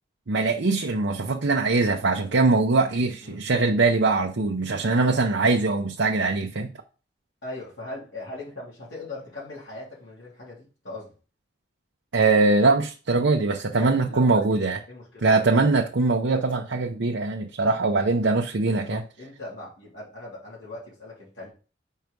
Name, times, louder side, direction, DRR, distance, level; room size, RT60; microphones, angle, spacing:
voice 1, 0.3-6.7 12.1-14.8 15.2-19.0, right 3 dB, 75° right, 0.7 m, -22 dB
voice 2, 7.4-11.2 13.7-14.5 14.9-15.3 18.6-21.5, left 2 dB, 85° left, 3.4 m, -40 dB
5.6 x 4.7 x 5.2 m
head